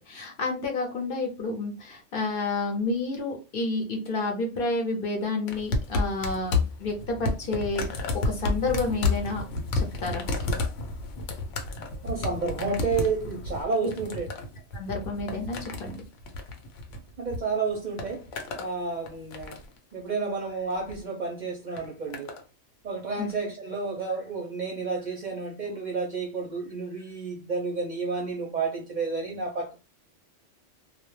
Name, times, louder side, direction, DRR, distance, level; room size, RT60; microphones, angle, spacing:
voice 1, 0.1-9.4 9.7-10.3 14.7-16.0 23.2-23.3, left 3 dB, 55° left, 0.7 m, -30 dB
sound 1, 5.5-17.4 17.7-18.7 19.1-19.8 20.7-21.0 21.8-22.4 23.3-23.4, left 3 dB, 85° left, 0.9 m, -31 dB
voice 2, 12.0-14.3 17.2-18.3 18.6-19.6 19.9-22.4 22.8-29.7, right 4 dB, 55° right, 0.5 m, -31 dB
2.2 x 2.0 x 3.0 m
omnidirectional pair, 1.2 m